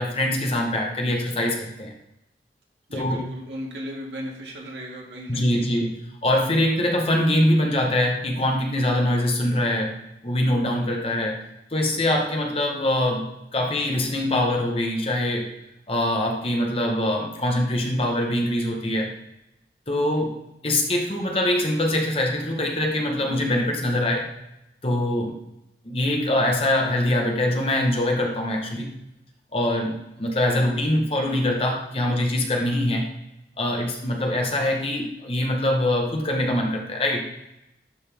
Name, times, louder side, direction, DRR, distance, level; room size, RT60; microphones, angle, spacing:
voice 1, 0.0-1.9 2.9-3.2 5.3-5.9 6.2-9.9 10.2-11.4 11.7-15.5 15.9-19.1 19.9-20.4 20.6-24.3 24.8-25.4 25.8-28.9 29.5-33.1 33.6-37.3, left 1 dB, 35° left, 1 dB, 1.1 m, -23 dB
voice 2, 2.9-5.7, equal, 90° right, -2 dB, 2.0 m, -36 dB
11.5 x 4.0 x 3.5 m, 0.86 s
head